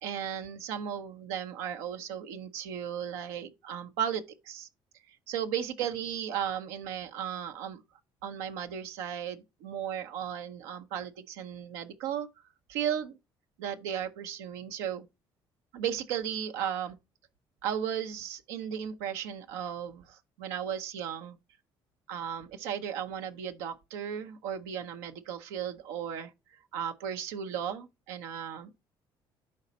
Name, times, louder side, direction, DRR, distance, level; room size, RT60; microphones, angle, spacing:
voice 1, 0.0-4.7 5.1-7.8 8.2-12.3 12.7-13.2 13.6-15.1 15.7-17.0 17.6-21.4 22.1-26.3 26.7-28.7, right 9 dB, 85° right, 0.7 m, -35 dB
11.0 x 4.1 x 4.1 m
hypercardioid pair, 60°, 12 cm